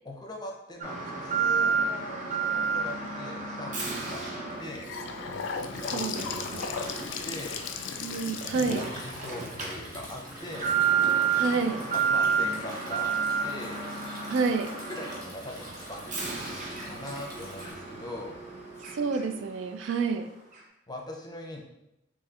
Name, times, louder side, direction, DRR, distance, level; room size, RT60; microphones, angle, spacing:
voice 1, 0.0-4.3 4.6-4.9 5.7-6.9 7.2-7.6 8.6-10.8 12.0-13.1 13.4-13.8 14.9-18.4 20.9-21.6, left 1 dB, 20° left, 0 dB, 0.6 m, -41 dB
Alarm, 0.8-19.5 19.8-19.9 20.5-20.6, right 6 dB, 40° right, 0.7 m, -31 dB
Gurgling / Sink (filling or washing) / Bathtub (filling or washing), 4.5-10.6, left 6 dB, 80° left, 0.3 m, -37 dB
voice 2, 5.9-6.6 8.0-8.9 11.3-11.8 14.3-14.7 18.9-20.3, right 4 dB, 80° right, 8 dB, 0.3 m, -29 dB
Stream, 6.7-17.7, equal, 20° right, 1.1 m, -47 dB
4.2 x 3.1 x 2.4 m, 0.86 s
head